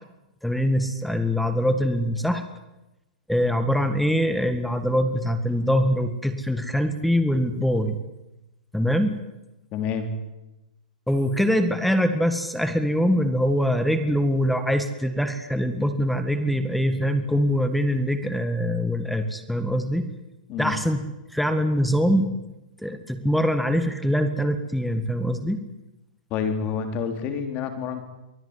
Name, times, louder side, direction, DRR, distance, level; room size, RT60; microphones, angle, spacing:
voice 1, 0.4-2.4 3.3-8.0 8.7-9.1 11.1-20.1 20.6-21.0 21.3-22.3 22.8-25.6, equal, ahead, 9 dB, 1.7 m, -23 dB
voice 2, 9.7-10.1 20.5-20.8 26.3-28.1, left 6 dB, 30° left, 7 dB, 3.6 m, -28 dB
24.0 x 16.5 x 9.8 m, 0.95 s
hypercardioid pair, 150°, 4 cm